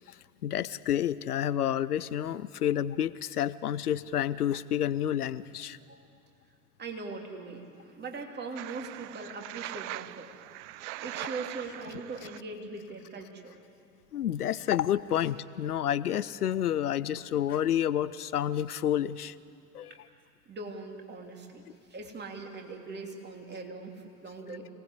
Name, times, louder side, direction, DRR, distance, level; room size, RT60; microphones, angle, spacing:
voice 1, 0.4-5.8 14.1-19.3 19.7-19.9, left 10 dB, 80° left, 18 dB, 0.7 m, -29 dB
voice 2, 6.8-10.3 11.0-13.5 19.9-20.0 20.5-24.7, right 3 dB, 20° right, 2 dB, 3.0 m, -41 dB
sound 1, 8.6-12.4, right 16 dB, 50° right, 0.6 m, -41 dB
26.0 x 19.0 x 8.2 m, 2.4 s
figure-of-eight pair, 80°, 45 cm